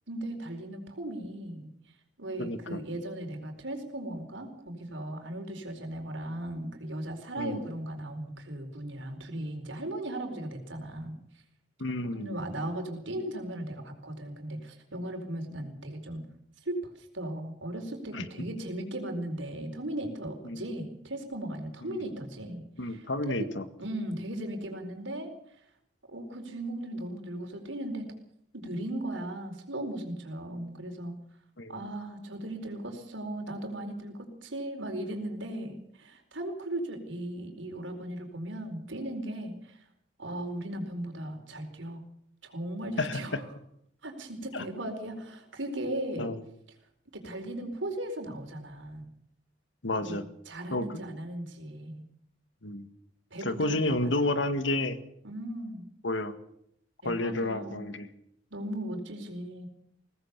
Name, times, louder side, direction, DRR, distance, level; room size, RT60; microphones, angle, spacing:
voice 1, 0.1-1.7 2.2-11.1 12.0-16.2 16.6-22.6 22.9-23.5 23.8-25.3 26.1-28.1 28.5-31.1 31.7-39.8 40.2-42.0 42.4-43.4 44.0-46.3 47.1-49.1 49.9-50.2 50.5-52.1 53.3-54.1 55.2-55.8 57.0-57.9 58.5-59.7, right 1 dB, 85° right, 5 dB, 4.5 m, -37 dB
voice 2, 2.4-2.8 7.4-7.6 11.8-12.4 18.1-18.3 20.4-20.7 21.9-22.0 22.8-23.6 31.6-31.8 43.0-43.2 44.5-44.6 46.2-46.4 49.8-50.2 50.7-51.0 52.6-52.9 53.4-55.0 56.0-56.4 57.0-58.1, left 2 dB, 80° left, 10 dB, 1.9 m, -30 dB
22.5 x 18.0 x 6.8 m, 0.72 s
head